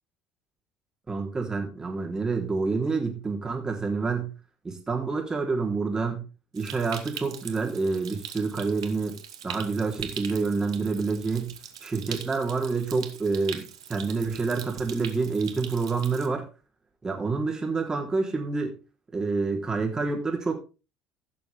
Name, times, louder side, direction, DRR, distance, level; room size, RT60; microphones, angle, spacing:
voice 1, 1.1-4.3 4.6-6.2 6.5-9.2 9.4-11.5 11.8-13.6 13.9-16.4 17.0-18.8 19.1-20.5, right 4 dB, 25° right, 1 dB, 4.0 m, -28 dB
Stream, 6.6-16.3, right 8 dB, 90° right, 1.2 m, -42 dB
16.0 x 6.8 x 3.7 m, 0.32 s
hypercardioid pair, 65°, 3 cm